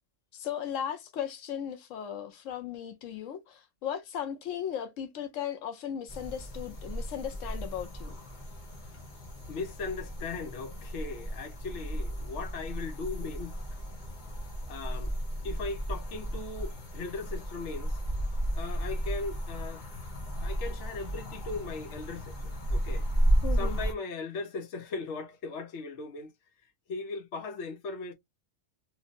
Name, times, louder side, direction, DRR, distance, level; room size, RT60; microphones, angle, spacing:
voice 1, 0.3-8.1 23.4-23.8, left 9 dB, 85° left, 1.0 m, -36 dB
sound 1, 6.1-23.9, right 1 dB, 40° left, 1.0 m, -33 dB
voice 2, 9.5-13.5 14.7-15.1 15.4-18.0 18.5-19.8 20.4-23.1 23.6-26.3 26.9-28.1, left 4 dB, 70° left, 1.0 m, -38 dB
3.1 x 2.7 x 2.5 m
omnidirectional pair, 1.3 m